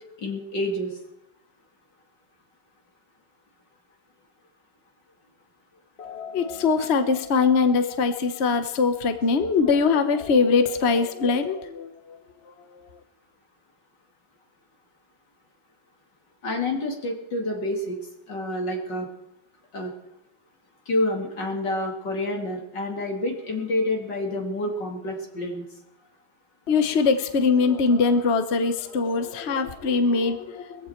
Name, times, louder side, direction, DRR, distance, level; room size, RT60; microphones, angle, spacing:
voice 1, 0.2-0.9 16.4-18.0 18.3-19.1 19.7-19.9 20.9-25.6, left 1 dB, 80° left, 1 dB, 3.4 m, -28 dB
voice 2, 6.0-12.2 26.7-30.9, left 4 dB, 45° left, 8 dB, 1.1 m, -22 dB
21.0 x 15.0 x 4.5 m, 0.86 s
omnidirectional pair, 1.9 m